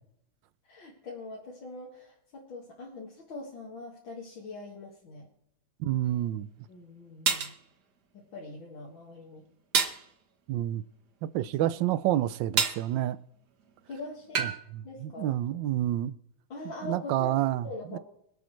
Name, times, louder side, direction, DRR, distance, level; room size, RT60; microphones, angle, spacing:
voice 1, 0.7-5.3 6.7-7.5 8.1-9.4 11.4-11.8 13.9-14.5 14.8-15.4 16.5-18.0, left 2 dB, 60° left, 2.7 m, -43 dB
voice 2, 5.8-6.5 10.5-10.8 11.3-13.2 14.4-16.2 16.8-18.0, right 13 dB, 70° right, 1.1 m, -29 dB
sound 1, 6.1-6.2 7.3-7.6 9.7-10.0 12.6-12.9 14.3-14.6, right 6 dB, 55° right, 1.7 m, -26 dB
25.5 x 8.4 x 3.2 m
omnidirectional pair, 2.4 m